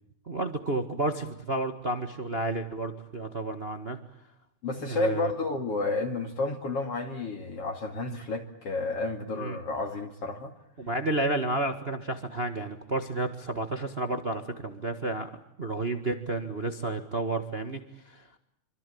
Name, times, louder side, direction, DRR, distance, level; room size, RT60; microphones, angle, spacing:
voice 1, 0.3-4.0 4.8-5.3 9.3-9.6 10.8-15.3 15.6-18.2, right 2 dB, 60° right, 7 dB, 0.6 m, -31 dB
voice 2, 4.6-10.5, left 3 dB, 45° left, 4 dB, 3.0 m, -31 dB
26.0 x 25.5 x 8.6 m, 0.75 s
omnidirectional pair, 4.2 m